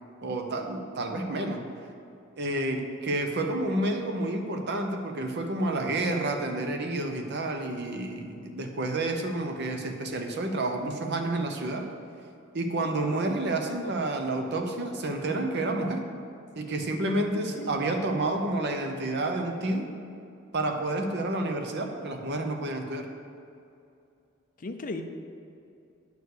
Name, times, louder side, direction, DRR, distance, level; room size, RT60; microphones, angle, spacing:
voice 1, 0.2-1.6 2.4-11.9 12.5-16.0 16.5-19.9 20.5-23.1, right 2 dB, 50° right, 4 dB, 0.9 m, -29 dB
voice 2, 17.5-17.9 24.6-25.0, left 3 dB, 40° left, 7 dB, 0.5 m, -36 dB
9.7 x 4.7 x 6.6 m, 2.6 s
head